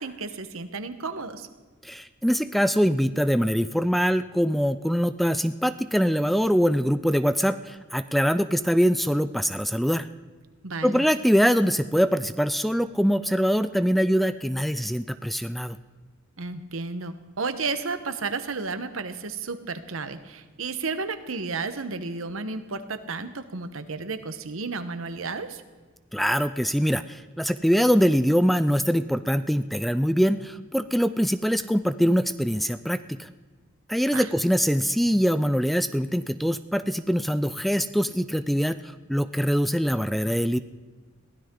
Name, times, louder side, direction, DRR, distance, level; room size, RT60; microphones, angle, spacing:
voice 1, 0.0-1.5 10.6-11.0 16.4-25.6 34.1-34.3, right 4 dB, 75° right, 10 dB, 1.2 m, -32 dB
voice 2, 1.8-10.1 10.8-15.8 26.1-33.3 33.9-38.8 39.1-40.6, equal, ahead, 12 dB, 0.4 m, -23 dB
22.5 x 16.0 x 3.8 m, 1.4 s
head